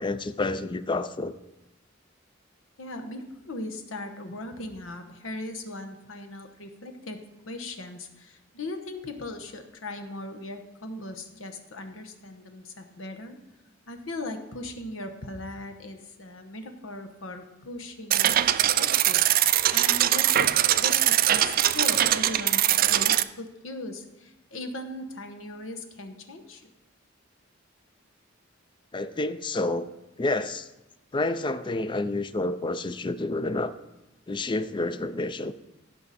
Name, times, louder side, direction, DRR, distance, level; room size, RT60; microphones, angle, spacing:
voice 1, 0.0-1.3 28.9-29.9 30.2-30.7 31.1-33.7 34.3-35.5, left 2 dB, 25° left, 13 dB, 0.4 m, -29 dB
voice 2, 2.8-7.2 7.5-13.4 13.9-26.7, left 2 dB, 85° left, 6 dB, 1.1 m, -38 dB
sound 1, 18.1-23.2, right 12 dB, 45° right, 0.3 m, -22 dB
15.5 x 5.8 x 4.2 m, 0.99 s
head